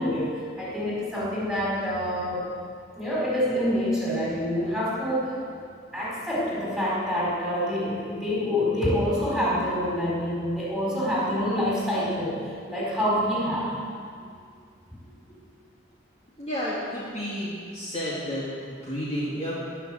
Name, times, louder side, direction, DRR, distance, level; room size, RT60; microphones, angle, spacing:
voice 1, 0.0-2.4 2.9-5.4 5.9-12.4 12.7-13.7, equal, ahead, -7 dB, 4.3 m, -26 dB
voice 2, 14.2-14.5 15.3-15.6 16.4-19.5, equal, 35° left, -7 dB, 2.0 m, -32 dB
18.0 x 6.3 x 7.8 m, 2.2 s
head